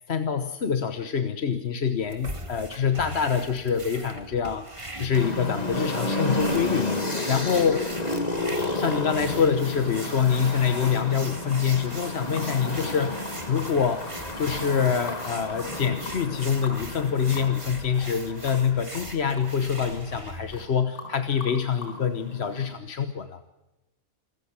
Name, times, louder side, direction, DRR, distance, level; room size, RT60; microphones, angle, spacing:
voice 1, 0.1-7.9 8.7-14.1 14.4-23.4, left 7 dB, 50° left, 9 dB, 1.3 m, -26 dB
sound 1, 2.0-20.6, right 1 dB, 20° right, 1.9 m, -41 dB
sound 2, 5.1-20.0 21.0-22.8, left 2 dB, 25° left, 2.3 m, -32 dB
sound 3, 11.5-11.6 12.0-12.5 12.9-13.0 13.2-13.7 14.0-14.1 14.5-15.2 15.6-15.7 16.0-16.2 16.6-16.8 17.1-17.2 17.3-17.5 17.9-18.2 18.4-18.6 18.9-19.1 19.3-19.5 19.7-20.2 20.5-20.7 20.9-21.1 21.4-21.9, left 4 dB, 85° left, 6.0 m, -41 dB
27.5 x 14.5 x 7.2 m, 1.0 s
omnidirectional pair, 1.5 m